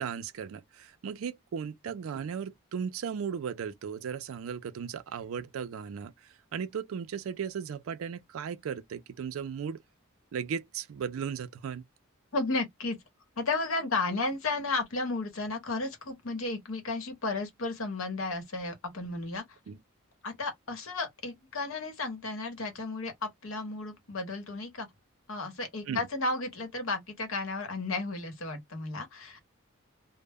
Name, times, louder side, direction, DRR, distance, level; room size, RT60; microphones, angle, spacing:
voice 1, 0.0-6.1 6.5-9.8 10.3-11.8 19.7-19.8 25.9-26.0, right 7 dB, 75° right, 0.4 m, -36 dB
voice 2, 12.3-13.0 13.4-19.6 20.2-24.9 25.3-29.4, left 3 dB, 70° left, 0.9 m, -33 dB
2.0 x 2.0 x 3.4 m
head